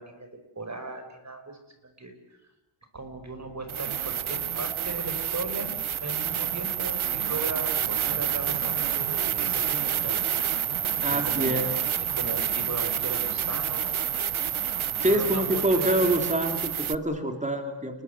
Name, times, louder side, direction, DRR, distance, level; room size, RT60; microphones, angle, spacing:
voice 1, 0.0-2.1 2.9-5.8 6.0-10.3 11.1-11.6 12.2-14.0 15.1-16.2, right 2 dB, 35° right, 7 dB, 5.3 m, -37 dB
sound 1, 3.0-3.1 3.7-16.9, right 9 dB, 75° right, 0.9 m, -28 dB
voice 2, 11.0-11.7 15.0-18.0, right 1 dB, 15° right, 5 dB, 3.0 m, -26 dB
29.0 x 21.5 x 8.3 m, 0.89 s
wide cardioid pair, 105°, 50 cm